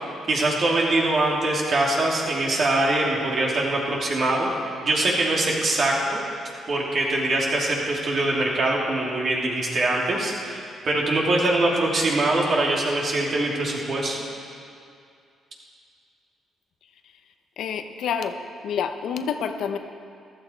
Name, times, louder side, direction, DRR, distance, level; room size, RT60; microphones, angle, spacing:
voice 1, 0.3-6.2 6.7-14.2, right 2 dB, 50° right, -2 dB, 3.0 m, -23 dB
voice 2, 17.6-18.4 18.6-19.8, left 7 dB, 75° left, 7 dB, 0.9 m, -28 dB
14.5 x 13.0 x 4.6 m, 2.4 s
cardioid pair, 90°, 0 cm